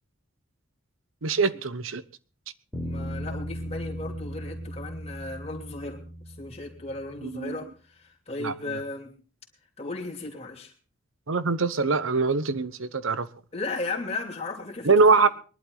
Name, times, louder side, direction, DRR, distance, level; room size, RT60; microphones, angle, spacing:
voice 1, 1.2-2.0 7.2-7.5 8.4-8.5 11.3-13.3 14.8-15.3, right 4 dB, 80° right, 1.0 m, -23 dB
voice 2, 2.7-9.1 9.8-10.7 13.5-15.3, left 2 dB, 30° left, 3.0 m, -36 dB
Bass guitar, 2.7-7.1, equal, 10° right, 3.0 m, -37 dB
21.5 x 11.5 x 4.0 m
head